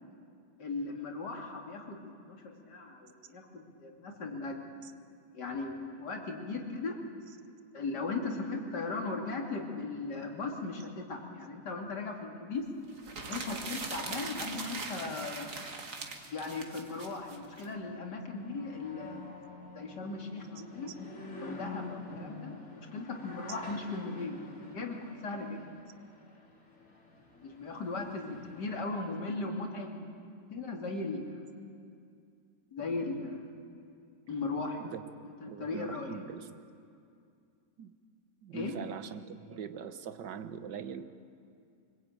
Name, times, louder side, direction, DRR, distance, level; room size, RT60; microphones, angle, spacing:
voice 1, 0.6-4.8 5.3-7.0 7.7-12.7 13.3-15.5 16.3-19.4 19.7-20.9 21.4-24.3 24.6-25.6 27.4-30.1 30.5-31.5 32.7-33.5 34.3-34.9 35.4-36.1 38.5-38.7, left 3 dB, 75° left, 1 dB, 3.1 m, -38 dB
sound 1, 11.6-11.7 12.0-28.8, left 3 dB, 50° left, 3.3 m, -50 dB
sound 2, 13.0-17.7, right 3 dB, 50° right, 2.1 m, -41 dB
voice 2, 35.4-36.5 37.8-37.9 38.4-41.1, right 7 dB, 85° right, 11 dB, 1.7 m, -42 dB
24.5 x 20.5 x 9.1 m, 2.4 s
omnidirectional pair, 1.8 m